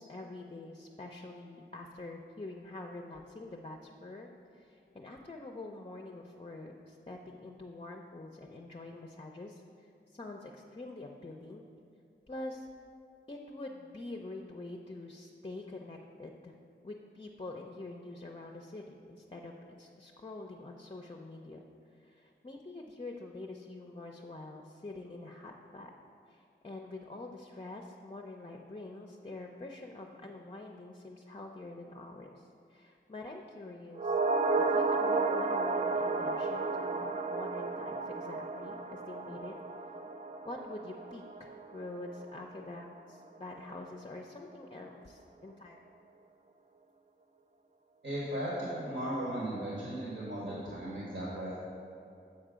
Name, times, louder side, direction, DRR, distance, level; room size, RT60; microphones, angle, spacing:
voice 1, 0.0-11.6 12.3-12.7 13.3-16.5 16.8-21.6 21.9-25.9 26.3-34.2 34.7-39.5 40.4-45.8, left 2 dB, 30° left, 1 dB, 0.5 m, -46 dB
sound 1, 34.0-42.4 42.7-42.8, right 3 dB, 35° right, 0.4 m, -32 dB
voice 2, 48.0-51.6, right 1 dB, 65° right, -6 dB, 1.3 m, -36 dB
7.4 x 4.5 x 5.0 m, 2.6 s
wide cardioid pair, 60°, 20 cm